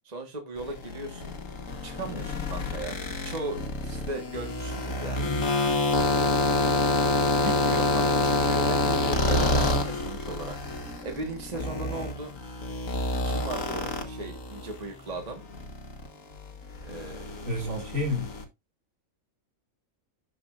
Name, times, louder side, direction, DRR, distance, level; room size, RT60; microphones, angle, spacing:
voice 1, 0.0-1.3 1.8-3.0 3.2-5.3 7.4-12.3 13.2-15.4 16.8-17.8, right 3 dB, 30° right, 1.6 m, -37 dB
sound 1, 0.6-14.8 15.1-18.4, left 2 dB, 65° left, 1.8 m, -28 dB
voice 2, 17.5-18.3, left 2 dB, 55° right, 2.2 m, -31 dB
11.5 x 5.2 x 2.5 m
omnidirectional pair, 1.5 m